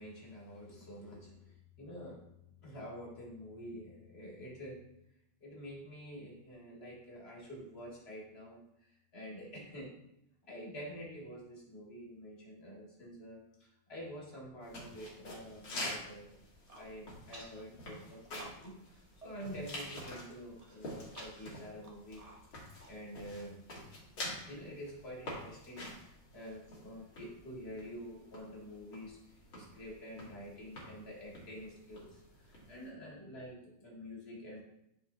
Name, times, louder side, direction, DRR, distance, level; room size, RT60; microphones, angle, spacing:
voice 1, 0.0-2.3 2.6-4.8 5.4-8.6 9.1-9.9 10.4-16.4 16.8-22.2 22.5-23.8 24.5-29.2 29.5-34.6, equal, 30° left, -4 dB, 2.0 m, -48 dB
sound 1, 14.6-32.9, left 1 dB, 65° left, 2.4 m, -48 dB
Human voice, 16.6-16.9 17.3-17.6 18.0-18.9 19.2-19.3 19.7-20.0 20.6-23.4, right 1 dB, 70° right, 0.3 m, -54 dB
10.5 x 4.5 x 2.8 m, 0.81 s
omnidirectional pair, 2.2 m